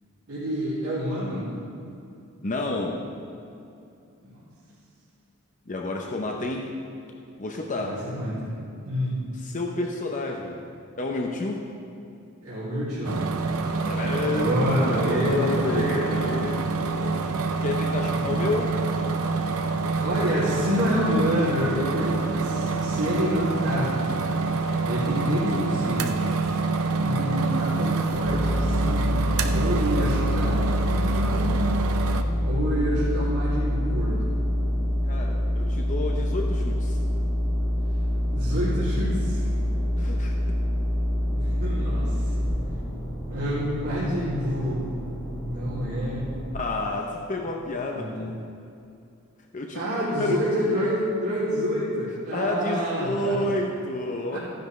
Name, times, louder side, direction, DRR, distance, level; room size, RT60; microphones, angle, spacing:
voice 1, 0.3-1.5 4.2-4.4 7.7-8.5 8.8-9.2 12.4-13.1 14.2-16.4 18.1-18.5 19.9-23.9 24.8-26.1 26.9-29.1 29.5-31.4 32.4-34.3 38.2-39.4 41.3-42.5 43.3-44.9 45.4-46.3 47.7-48.2 49.7-53.4 54.3-54.4, equal, 90° right, -10 dB, 2.6 m, -28 dB
voice 2, 2.4-3.1 5.7-6.6 7.4-8.0 9.4-10.6 11.0-11.6 13.7-17.2 17.6-18.7 35.1-37.0 40.0-40.3 46.5-48.4 49.5-49.8 50.2-50.4 52.3-54.4, left 2 dB, 35° left, 1 dB, 0.7 m, -30 dB
sound 1, 13.0-32.2, right 3 dB, 70° right, 0.7 m, -27 dB
sound 2, 28.1-46.5, equal, 10° left, 2.4 m, -26 dB
14.5 x 10.5 x 3.2 m, 2.6 s
head